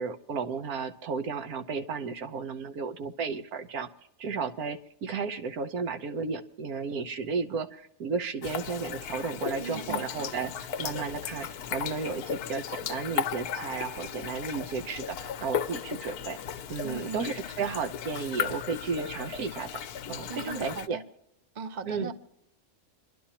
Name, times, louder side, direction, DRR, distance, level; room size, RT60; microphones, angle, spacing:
voice 1, 0.0-3.9 4.2-16.4 16.7-19.8 20.1-21.0 21.9-22.1, right 5 dB, 75° right, 7 dB, 1.3 m, -33 dB
sound 1, 8.4-20.9, left 8 dB, 80° left, 1.2 m, -36 dB
voice 2, 9.6-10.0 16.8-17.2 20.3-21.0 21.5-22.1, right 5 dB, 35° right, 10 dB, 0.8 m, -37 dB
28.0 x 11.5 x 2.9 m, 0.79 s
omnidirectional pair, 1.6 m